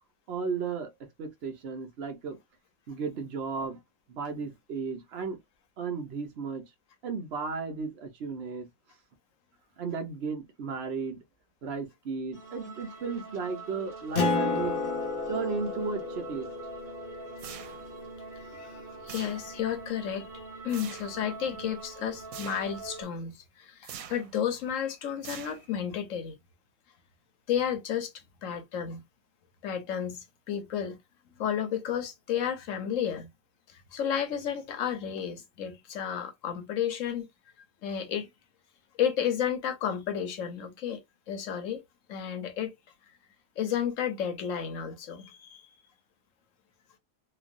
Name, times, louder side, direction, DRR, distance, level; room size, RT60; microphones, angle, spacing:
voice 1, 0.3-0.9 1.2-2.4 2.9-3.8 4.1-5.4 5.8-6.6 7.0-8.7 9.8-11.2 11.6-14.9 15.3-16.5, right 5 dB, 55° right, 0.9 m, -34 dB
sound 1, 12.3-23.0, right 3 dB, 35° right, 1.2 m, -44 dB
Acoustic guitar, 14.1-19.1, left 4 dB, 50° left, 0.8 m, -33 dB
sound 2, 17.4-18.1 19.1-19.7 20.7-21.2 22.3-22.8 23.8-24.4 25.2-25.9, right 8 dB, 90° right, 1.1 m, -44 dB
voice 2, 18.5-26.4 27.5-28.1 28.4-29.0 29.6-31.0 31.4-33.3 33.7-37.3 37.8-38.3 39.0-41.0 41.3-41.8 42.1-42.7 43.6-45.6, left 9 dB, 70° left, 1.1 m, -32 dB
3.1 x 2.4 x 2.5 m
omnidirectional pair, 1.4 m